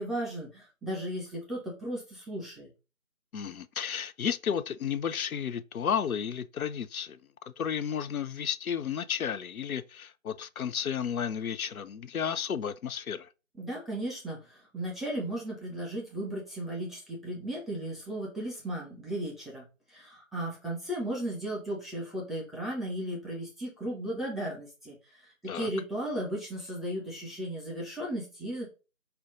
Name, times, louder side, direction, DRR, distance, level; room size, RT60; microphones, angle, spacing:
voice 1, 0.0-2.7 13.6-28.7, right 1 dB, ahead, 0.5 m, -35 dB
voice 2, 3.3-7.2 7.6-13.3 25.5-25.7, left 8 dB, 90° left, 0.5 m, -32 dB
5.6 x 2.2 x 3.7 m
figure-of-eight pair, 165°, 41 cm